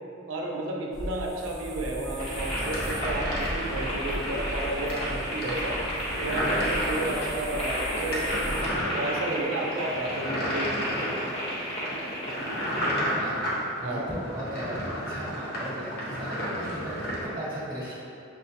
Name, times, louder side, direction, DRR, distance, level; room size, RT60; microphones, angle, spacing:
voice 1, 0.3-5.8 6.2-8.6 8.9-11.2 13.8-14.1, right 2 dB, 85° right, -1 dB, 0.5 m, -32 dB
sound 1, 0.9-8.8, equal, ahead, 0.4 m, -37 dB
sound 2, 2.2-12.9, equal, 30° left, 1.0 m, -33 dB
sound 3, 2.4-17.3, equal, 50° left, 0.6 m, -33 dB
voice 2, 12.8-13.4 13.7-17.9, equal, 20° right, -9 dB, 1.1 m, -37 dB
6.2 x 2.1 x 2.7 m, 2.7 s
head